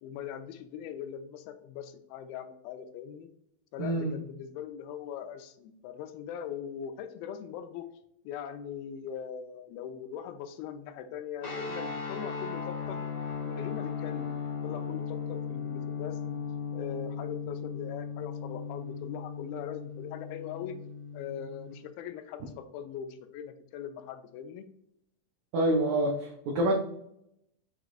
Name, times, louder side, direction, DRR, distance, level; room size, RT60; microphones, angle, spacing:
voice 1, 0.0-3.3 3.7-7.9 8.3-13.0 13.5-14.4 14.6-16.4 16.7-20.8 21.1-24.7, left 8 dB, 90° left, 9 dB, 2.4 m, -41 dB
voice 2, 3.8-4.1 25.5-26.7, right 1 dB, 85° right, -1 dB, 1.6 m, -27 dB
sound 1, 11.4-21.7, left 6 dB, 40° left, 1.0 m, -37 dB
6.8 x 3.0 x 2.5 m, 0.75 s
omnidirectional pair, 4.2 m